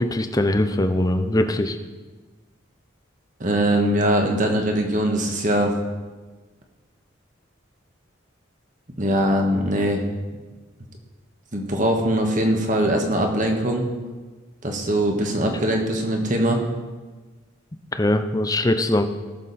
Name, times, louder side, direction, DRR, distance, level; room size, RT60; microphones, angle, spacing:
voice 1, 0.0-1.8 17.9-19.1, left 1 dB, 20° left, 8 dB, 0.6 m, -21 dB
voice 2, 3.4-5.7 9.0-10.0 11.5-13.8 14.6-16.6, right 1 dB, 40° right, 2 dB, 1.5 m, -21 dB
18.0 x 7.2 x 4.2 m, 1.3 s
head